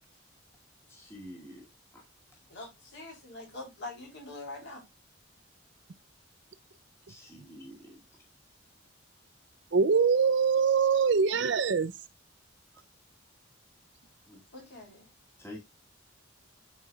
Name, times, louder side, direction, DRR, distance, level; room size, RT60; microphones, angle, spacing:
voice 1, 0.9-1.6 1.9-2.0 7.1-8.0 14.3-14.4 15.4-15.6, left 1 dB, 10° left, 2.2 m, -47 dB
voice 2, 2.5-4.8 14.5-15.1, left 2 dB, 55° left, 3.4 m, -44 dB
voice 3, 9.7-11.9, right 5 dB, 55° right, 0.5 m, -23 dB
11.5 x 4.3 x 2.3 m
head